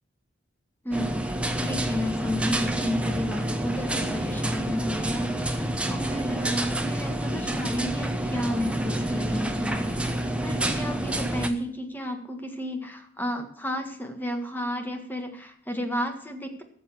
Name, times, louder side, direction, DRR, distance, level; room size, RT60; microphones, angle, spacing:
voice 1, 0.8-1.3 1.6-10.1 10.4-16.6, equal, 10° left, 5 dB, 1.6 m, -32 dB
sound 1, 0.9-11.5, right 1 dB, 5° right, 1.0 m, -28 dB
14.5 x 7.2 x 7.4 m, 0.67 s
head